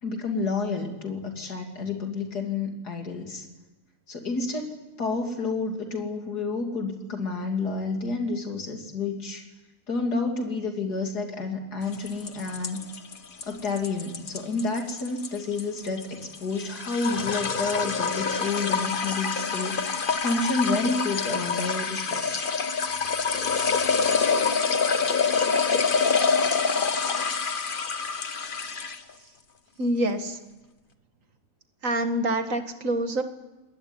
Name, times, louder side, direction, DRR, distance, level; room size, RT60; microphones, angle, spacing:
voice 1, 0.0-3.5 4.1-9.4 9.9-12.9 13.4-22.5, left 3 dB, 80° left, 3 dB, 3.6 m, -30 dB
sound 1, 11.9-29.1, left 5 dB, 35° left, 1.2 m, -26 dB
voice 2, 29.8-30.4 31.8-33.2, right 1 dB, 55° right, 7 dB, 2.2 m, -26 dB
24.5 x 20.0 x 9.9 m, 1.1 s
omnidirectional pair, 1.7 m